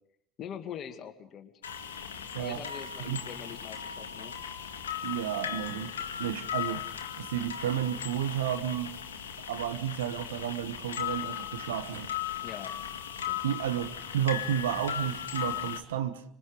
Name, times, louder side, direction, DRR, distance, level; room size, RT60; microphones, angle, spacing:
voice 1, 0.4-1.5 2.4-4.3 12.4-12.7 13.2-13.4, left 9 dB, 45° left, 2.3 m, -43 dB
sound 1, 1.6-15.8, left 9 dB, 80° left, 2.0 m, -37 dB
voice 2, 5.0-6.9 7.2-8.9 9.5-12.1 13.4-16.2, right 10 dB, 75° right, 1.2 m, -32 dB
26.0 x 23.0 x 5.0 m
figure-of-eight pair, 70°, 0 cm